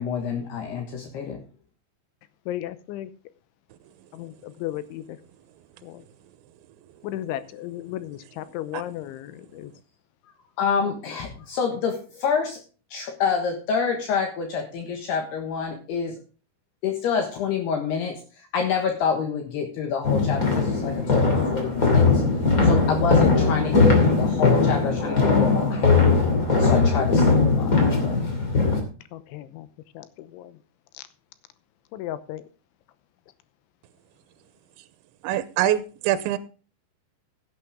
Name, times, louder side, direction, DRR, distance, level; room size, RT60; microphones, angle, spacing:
voice 1, 0.0-1.4 10.6-12.6 12.9-16.2 16.8-22.2 22.6-26.1 26.5-28.2, left 6 dB, 70° left, 3 dB, 3.2 m, -28 dB
voice 2, 2.5-3.1 4.1-5.0 5.8-6.0 7.0-9.7 29.1-29.7 30.0-30.5 30.9-31.0 31.9-32.4, left 13 dB, 85° left, 13 dB, 3.3 m, -35 dB
sound 1, 20.0-28.8, left 4 dB, 25° left, 2.0 m, -20 dB
voice 3, 35.2-36.4, right 12 dB, 80° right, 13 dB, 3.1 m, -24 dB
16.0 x 8.8 x 3.6 m, 0.36 s
omnidirectional pair, 5.4 m